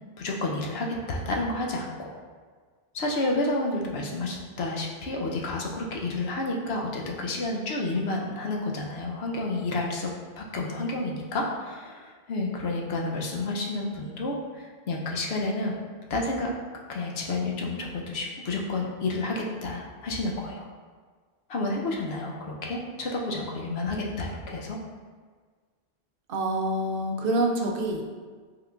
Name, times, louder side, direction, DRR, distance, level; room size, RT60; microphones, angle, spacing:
voice 1, 0.2-2.2 2.9-15.8 16.1-16.5 16.9-20.7 21.5-24.8, left 2 dB, 75° left, -1 dB, 1.0 m, -30 dB
voice 2, 26.3-28.0, right 1 dB, 65° right, 1 dB, 0.7 m, -26 dB
5.7 x 3.6 x 2.4 m, 1.5 s
omnidirectional pair, 1.1 m